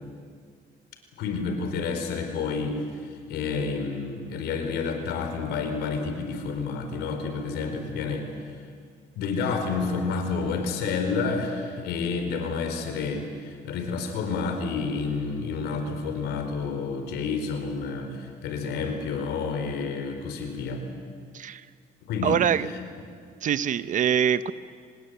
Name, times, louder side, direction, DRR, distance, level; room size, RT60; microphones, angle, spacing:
voice 1, 1.2-8.6 9.2-20.8 22.1-22.7, left 4 dB, 80° left, 6 dB, 4.5 m, -29 dB
voice 2, 21.3-21.7 22.2-22.7 23.4-24.5, right 8 dB, 50° right, 14 dB, 0.9 m, -24 dB
26.0 x 19.5 x 9.4 m, 2.1 s
cardioid pair, 110°, 17 cm